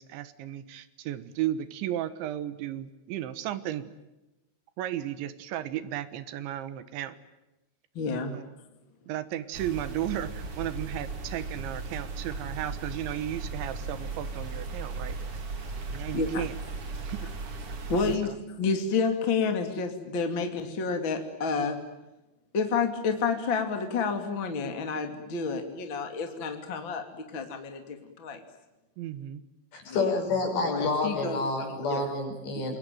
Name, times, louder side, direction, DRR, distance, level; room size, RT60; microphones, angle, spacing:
voice 1, 0.0-3.9 4.8-7.2 8.3-8.6 9.1-15.3 15.9-16.6 17.1-17.2 18.0-18.4 29.0-29.4, right 12 dB, 75° right, 13 dB, 3.5 m, -34 dB
voice 2, 7.9-8.3 16.1-16.5 17.9-21.8 22.5-27.0 27.3-28.4 29.9-30.2 30.7-32.1 32.5-32.6, left 4 dB, 35° left, 5 dB, 2.3 m, -30 dB
sound 1, 9.5-18.2, right 3 dB, 35° right, 2.8 m, -37 dB
voice 3, 29.7-32.8, left 3 dB, 65° left, 3 dB, 8.2 m, -29 dB
28.0 x 23.0 x 9.2 m, 1.0 s
omnidirectional pair, 5.4 m